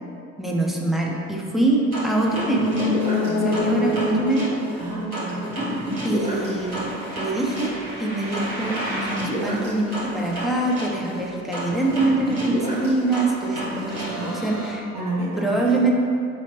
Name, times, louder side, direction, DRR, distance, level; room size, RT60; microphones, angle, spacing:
voice 1, 0.4-2.9 3.4-4.6 6.0-14.9 15.4-15.9, right 2 dB, ahead, -3 dB, 0.5 m, -24 dB
sound 1, 1.9-14.7, right 1 dB, 90° right, 1.1 m, -30 dB
sound 2, 2.5-6.2 6.5-6.6, left 3 dB, 70° left, 0.5 m, -27 dB
voice 2, 3.2-4.2 4.8-5.5 14.2-14.5 14.9-15.6, right 2 dB, 65° right, -7 dB, 1.2 m, -31 dB
5.9 x 2.8 x 2.9 m, 2.4 s
figure-of-eight pair, 55°, 41 cm